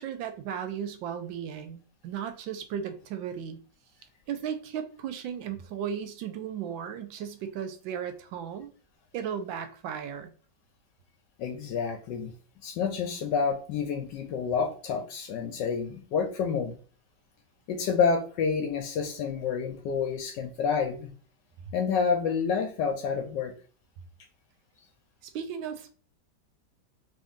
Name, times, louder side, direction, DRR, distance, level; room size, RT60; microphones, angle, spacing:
voice 1, 0.0-3.6 4.3-8.7 9.1-10.3 25.2-25.9, right 8 dB, 85° right, 1.4 m, -35 dB
voice 2, 11.4-12.3 12.6-16.8 17.7-21.1 21.7-23.5, left 6 dB, 75° left, 1.2 m, -28 dB
3.7 x 2.6 x 3.5 m
omnidirectional pair, 2.0 m